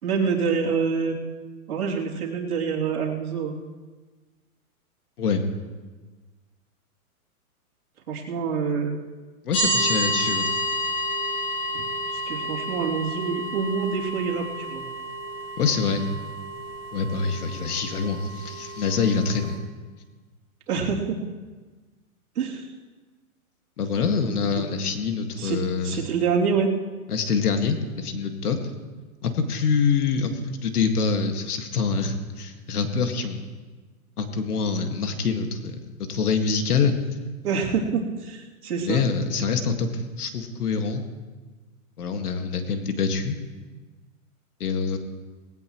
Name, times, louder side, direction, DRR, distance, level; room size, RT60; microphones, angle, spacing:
voice 1, 0.0-1.2 1.7-3.6 8.1-8.9 11.7-11.8 12.1-14.8 20.7-21.2 22.3-22.7 25.4-25.6 25.8-26.7 37.4-39.0, right 5 dB, 85° right, -2 dB, 3.2 m, -26 dB
voice 2, 9.4-10.5 15.6-16.1 16.9-19.6 23.8-26.0 27.1-28.6 29.2-33.5 34.2-36.9 38.8-41.0 42.0-43.4 44.6-45.0, left 5 dB, 90° left, 5 dB, 2.0 m, -25 dB
sound 1, 9.5-19.5, equal, 20° left, 3.1 m, -30 dB
19.0 x 16.5 x 3.1 m, 1.3 s
hypercardioid pair, 180°, 44 cm